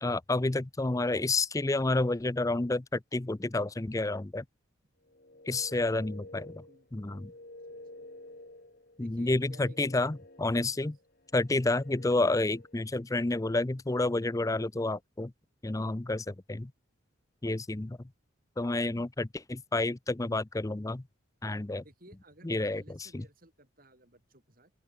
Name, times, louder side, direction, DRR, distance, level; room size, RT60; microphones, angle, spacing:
voice 1, 0.0-4.4 5.5-6.6 6.9-7.3 9.0-11.0 11.3-15.3 15.6-16.7 17.4-18.0 18.6-21.0 21.4-21.8 22.4-23.2, left 2 dB, 15° left, 0.5 m, -30 dB
sound 1, 5.0-12.9, left 1 dB, 45° left, 2.9 m, -51 dB
voice 2, 5.5-5.9 6.2-6.4 6.7-6.9 7.1-7.4 7.7-8.1 9.0-9.9 10.8-10.9 18.8-19.1 21.8-24.7, right 1 dB, 45° right, 7.7 m, -57 dB
open air
head